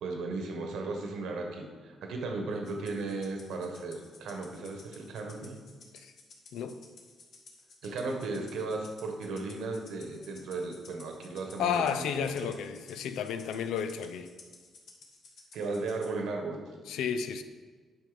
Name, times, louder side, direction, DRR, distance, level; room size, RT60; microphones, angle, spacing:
voice 1, 0.0-5.5 7.8-12.5 15.5-16.7, right 3 dB, 80° right, 3 dB, 1.3 m, -36 dB
Rattle (instrument), 2.6-16.1, left 3 dB, 65° left, 1.6 m, -55 dB
voice 2, 11.6-14.3 16.9-17.4, left 7 dB, 85° left, 10 dB, 0.6 m, -32 dB
8.9 x 5.5 x 5.1 m, 1.5 s
cardioid pair, 90°, 0 cm